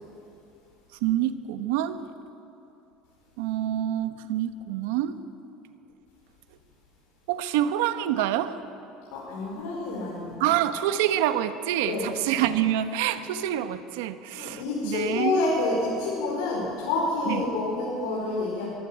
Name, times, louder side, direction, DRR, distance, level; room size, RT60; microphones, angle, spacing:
voice 1, 1.0-2.0 3.4-5.2 7.3-8.6 10.4-15.4 17.3-17.4, right 12 dB, 80° right, 10 dB, 1.1 m, -26 dB
voice 2, 9.1-10.5 11.9-12.1 14.3-18.6, left 3 dB, 75° left, -5 dB, 5.0 m, -28 dB
23.5 x 13.0 x 8.7 m, 2.9 s
cardioid pair, 175°, 0 cm